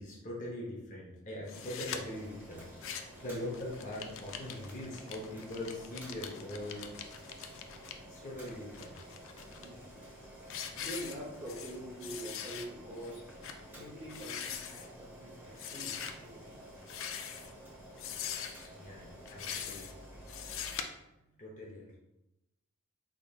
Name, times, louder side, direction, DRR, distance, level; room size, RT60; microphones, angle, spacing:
voice 1, 0.0-6.9 8.1-9.0 18.7-19.8 21.4-22.0, left 1 dB, 35° left, -4 dB, 0.8 m, -42 dB
sound 1, 1.5-2.0 2.6-3.2 3.5-7.9 8.5-9.7 10.1-10.2 10.5-11.8 12.0-12.7 13.0-13.1 13.4-13.6 14.0-14.9 15.6-16.1 16.8-17.5 18.0-18.7 19.3-19.9 20.3-20.8, left 8 dB, 60° left, 0.4 m, -42 dB
Boiling, 1.5-20.8, equal, 10° right, 1.1 m, -51 dB
voice 2, 9.5-9.9 10.8-13.2 13.7-16.5 21.2-21.4, right 1 dB, 25° right, -6 dB, 0.7 m, -45 dB
3.9 x 3.6 x 2.3 m, 0.91 s
head